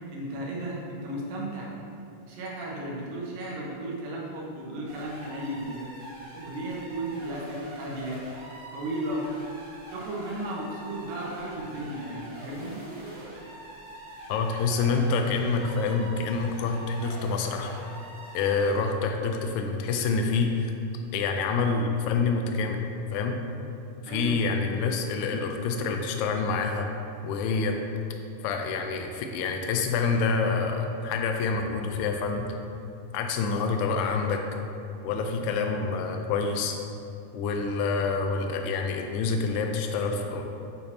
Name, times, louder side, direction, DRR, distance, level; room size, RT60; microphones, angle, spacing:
voice 1, 0.1-1.7 2.3-5.9 6.3-8.2 8.7-9.2 9.9-12.8 24.1-24.4, right 1 dB, 80° right, -3 dB, 2.5 m, -34 dB
sound 1, 4.9-18.9, right 1 dB, 60° right, 2.5 m, -44 dB
voice 2, 14.3-17.7 18.3-20.7 21.1-22.8 23.1-23.4 24.0-26.9 27.2-27.8 28.4-32.5 33.1-34.4 35.0-36.8 37.3-40.4, left 4 dB, 85° left, 4 dB, 1.7 m, -27 dB
8.5 x 2.8 x 4.1 m, 2.6 s
omnidirectional pair, 4.0 m